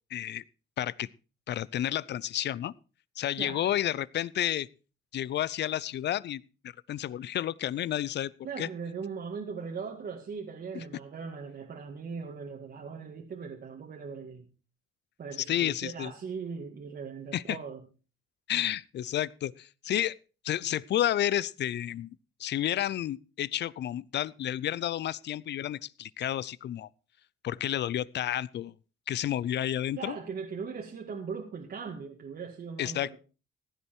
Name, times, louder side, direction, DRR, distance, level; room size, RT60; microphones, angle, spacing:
voice 1, 0.1-0.4 0.8-1.1 1.5-2.7 3.2-4.7 5.1-8.3 8.6-8.7 15.5-16.1 17.3-17.6 18.5-20.1 20.4-26.9 27.4-28.7 29.1-30.2 32.8-33.2, left 12 dB, 60° left, 22 dB, 0.6 m, -31 dB
voice 2, 3.4-3.7 8.4-14.5 15.2-17.8 30.0-33.2, right 5 dB, 50° right, 1 dB, 2.0 m, -39 dB
15.5 x 10.0 x 4.5 m, 0.34 s
cardioid pair, 90°, 20 cm